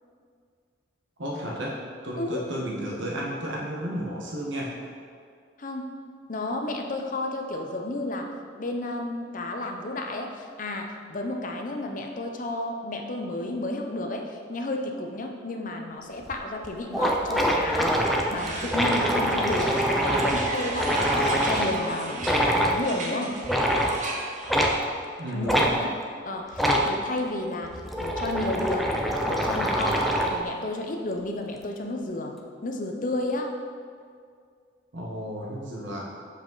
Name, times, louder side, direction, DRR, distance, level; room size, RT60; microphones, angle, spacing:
voice 1, 1.2-1.8 2.0-4.7 25.2-25.7 34.9-36.1, equal, 75° right, -2 dB, 1.0 m, -32 dB
voice 2, 2.2-2.5 5.6-6.0 6.3-8.3 8.6-18.0 18.3-23.4 25.3-26.0 26.3-29.0 29.3-32.4 32.6-33.6, left 2 dB, 45° left, 3 dB, 0.7 m, -32 dB
sound 1, 16.3-16.4 16.6-16.7 16.9-21.8 22.2-22.8 23.4-24.0 24.5-24.8 25.5-25.7 26.5-26.9 27.6-30.4, equal, ahead, 0.5 m, -24 dB
sound 2, 18.4-24.8, right 2 dB, 40° right, 0.8 m, -35 dB
7.7 x 5.0 x 4.0 m, 2.1 s
head